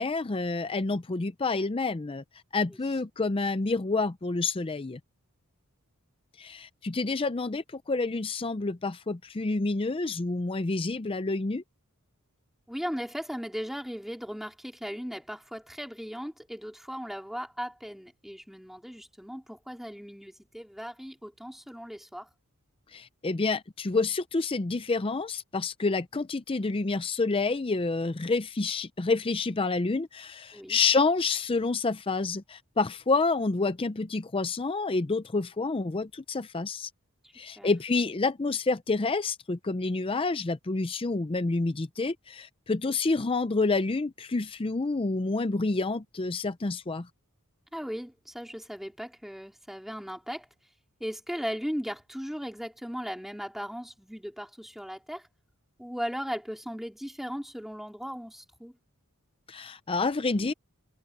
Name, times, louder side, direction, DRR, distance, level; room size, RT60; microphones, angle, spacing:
voice 1, 0.0-2.2 2.5-5.0 6.4-11.6 22.9-36.9 37.3-47.1 59.5-60.5, left 3 dB, 25° left, 0.5 m, -28 dB
voice 2, 12.7-22.3 30.5-30.8 37.2-37.7 47.7-50.5 51.0-55.3 55.8-58.7, equal, ahead, 3.8 m, -37 dB
head